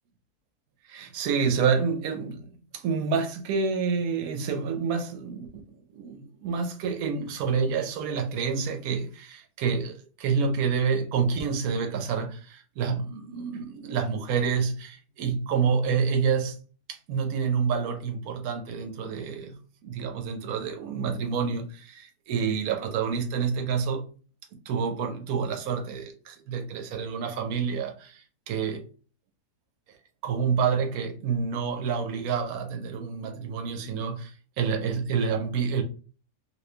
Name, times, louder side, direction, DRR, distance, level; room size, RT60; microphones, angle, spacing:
voice 1, 0.9-5.5 5.9-16.6 16.9-19.5 19.8-24.0 24.7-28.8 30.2-34.3 34.6-35.8, right 6 dB, 70° right, 1.1 m, -28 dB
3.1 x 2.6 x 3.2 m
omnidirectional pair, 1.7 m